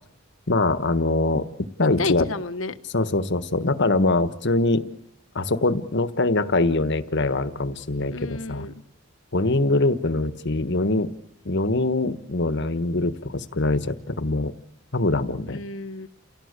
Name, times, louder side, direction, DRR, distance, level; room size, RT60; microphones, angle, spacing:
voice 1, 0.5-1.5 1.8-2.3 2.9-4.9 5.3-8.7 9.3-11.1 11.4-14.5 14.9-15.6, left 2 dB, 60° left, 13 dB, 1.5 m, -23 dB
voice 2, 2.0-2.8 8.1-8.7 15.5-16.1, left 3 dB, 80° left, 11 dB, 1.4 m, -30 dB
30.0 x 17.0 x 8.3 m, 0.77 s
head